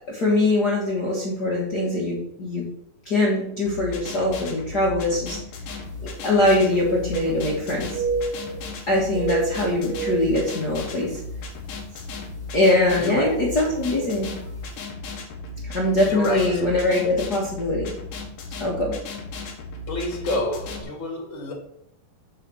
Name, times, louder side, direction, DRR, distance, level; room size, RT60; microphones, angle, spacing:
voice 1, 0.1-2.6 3.0-5.4 6.2-8.0 8.9-11.2 12.5-14.3 15.6-17.9 18.6-18.9, left 2 dB, 40° left, 1.5 m, -22 dB
sound 1, 3.6-20.8, left 3 dB, 65° left, 2.9 m, -36 dB
sound 2, 5.9-6.0 6.3-7.6 7.9-8.8 9.0-11.2 11.6-11.8 12.4-12.7 13.8-13.9 14.2-14.3, right 5 dB, 10° left, 3.0 m, -30 dB
voice 2, 13.0-13.4 16.0-16.6 19.9-21.5, left 1 dB, 85° left, 0.6 m, -28 dB
8.9 x 4.3 x 6.3 m
omnidirectional pair, 4.3 m